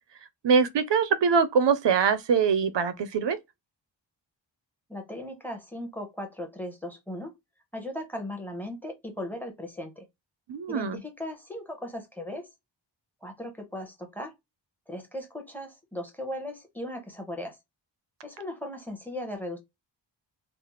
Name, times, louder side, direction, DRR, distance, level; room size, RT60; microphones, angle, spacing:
voice 1, 0.4-3.4 10.5-11.0, right 6 dB, 70° right, 0.6 m, -23 dB
voice 2, 4.9-7.3 7.7-10.1 10.7-12.5 13.2-14.3 14.9-17.6 18.2-19.6, left 1 dB, 5° left, 0.8 m, -37 dB
3.3 x 2.0 x 2.9 m
wide cardioid pair, 170°, 45 cm